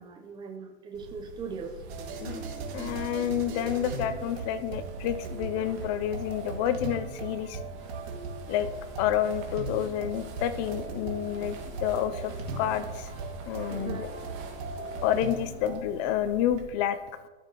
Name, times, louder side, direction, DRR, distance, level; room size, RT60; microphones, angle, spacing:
voice 1, 0.0-1.8 13.7-14.1, right 5 dB, 15° right, 4 dB, 0.7 m, -39 dB
sound 1, 0.9-16.6, right 3 dB, 40° right, 1.7 m, -44 dB
sound 2, 1.9-15.8, right 3 dB, 60° right, 2.1 m, -39 dB
voice 2, 2.7-7.6 8.5-8.7 9.0-13.1 13.5-14.0 15.0-17.0, left 10 dB, 30° left, 12 dB, 0.5 m, -29 dB
12.5 x 6.8 x 3.0 m, 1.3 s
hypercardioid pair, 130°, 35 cm